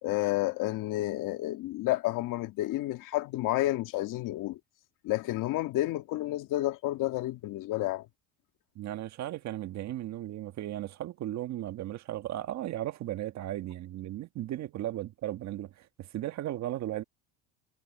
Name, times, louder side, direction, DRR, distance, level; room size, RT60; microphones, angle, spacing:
voice 1, 0.0-4.6 5.0-8.1, left 16 dB, 55° left, 1.9 m, -30 dB
voice 2, 8.7-17.0, right 13 dB, 45° right, 1.6 m, -36 dB
cardioid pair, 130°, 38 cm